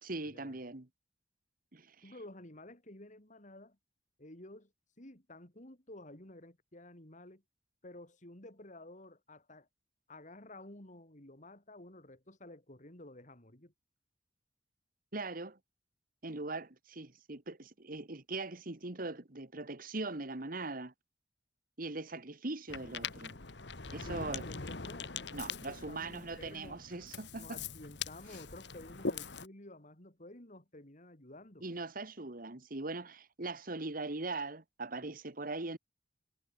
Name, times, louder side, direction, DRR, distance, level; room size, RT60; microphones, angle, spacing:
voice 1, 0.0-0.9 1.7-2.0 15.1-15.6 16.2-20.9 21.8-23.4 23.9-24.4 25.3-27.6 31.6-35.8, right 2 dB, 50° right, 1.9 m, -40 dB
voice 2, 2.0-3.8 4.2-4.7 5.0-7.4 7.8-9.7 10.1-13.7 24.0-26.8 27.3-31.6, left 1 dB, 45° left, 4.3 m, -52 dB
Ocean, 22.7-29.5, left 5 dB, 70° left, 1.9 m, -42 dB
head